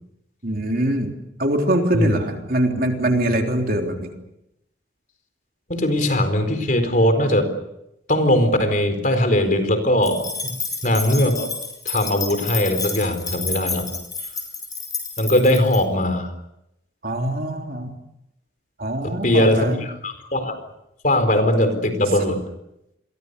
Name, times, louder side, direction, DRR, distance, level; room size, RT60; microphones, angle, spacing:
voice 1, 0.4-1.1 1.4-4.1 17.0-17.9 18.8-19.8, right 1 dB, 50° right, 3 dB, 3.6 m, -23 dB
voice 2, 5.7-7.5 8.1-10.3 10.8-11.5 11.9-13.8 15.2-16.3 19.0-20.5 21.0-22.4, left 1 dB, 45° left, 8 dB, 4.4 m, -20 dB
sound 1, 10.0-15.8, left 4 dB, 20° left, 6.4 m, -30 dB
30.0 x 23.0 x 6.9 m, 0.84 s
head